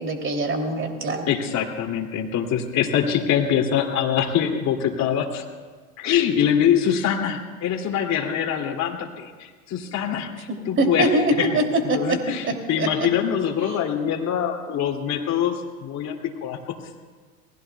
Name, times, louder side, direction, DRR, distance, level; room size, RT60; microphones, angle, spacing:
voice 1, 0.0-1.3 10.5-12.2 12.4-12.9, right 2 dB, 30° right, 3 dB, 3.0 m, -23 dB
voice 2, 1.3-5.4 6.0-11.1 11.4-11.6 11.9-16.6, left 9 dB, 40° left, 2 dB, 2.7 m, -24 dB
28.0 x 20.5 x 2.3 m, 1.5 s
hypercardioid pair, 90°, 42 cm